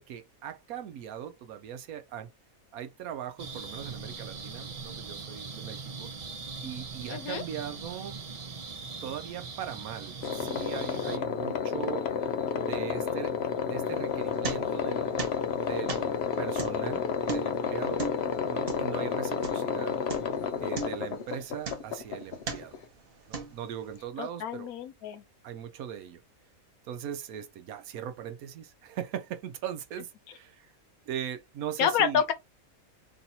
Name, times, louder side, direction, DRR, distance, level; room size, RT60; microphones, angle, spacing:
voice 1, 0.0-2.3 2.7-6.1 6.6-8.2 9.0-12.1 12.5-13.3 13.6-15.1 15.6-18.0 18.5-20.0 20.6-22.8 23.3-24.7 25.4-26.2 26.8-30.7 31.1-32.2, right 9 dB, 85° right, 1.1 m, -39 dB
sound 1, 3.4-11.2, right 4 dB, 65° right, 0.3 m, -41 dB
voice 2, 7.1-7.4 24.2-25.2 31.8-32.3, left 8 dB, 80° left, 1.1 m, -28 dB
sound 2, 10.2-22.8, left 7 dB, 55° left, 0.8 m, -31 dB
sound 3, 13.8-14.9 15.2-19.8 20.1-20.4 20.7-22.1 22.4-22.9 23.3-23.9, right 4 dB, 45° right, 1.0 m, -38 dB
3.1 x 2.7 x 4.2 m
omnidirectional pair, 1.5 m